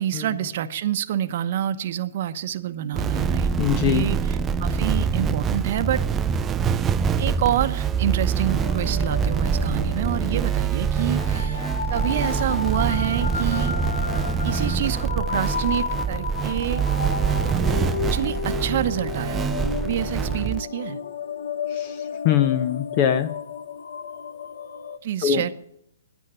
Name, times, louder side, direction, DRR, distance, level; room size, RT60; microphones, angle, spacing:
voice 1, 0.0-3.5 3.8-6.0 7.2-11.6 11.9-13.7 14.4-16.8 18.1-19.6 19.8-21.0 25.0-25.5, right 11 dB, 50° right, 10 dB, 0.9 m, -27 dB
sound 1, 2.9-20.6, right 6 dB, 15° right, 0.5 m, -25 dB
voice 2, 3.6-4.0 21.7-22.0 22.2-23.3 25.2-25.4, left 10 dB, 40° left, 12 dB, 0.8 m, -22 dB
sound 2, 8.2-25.0, left 6 dB, 80° left, 0.9 m, -33 dB
10.0 x 9.7 x 8.8 m, 0.74 s
hypercardioid pair, 145°, 0 cm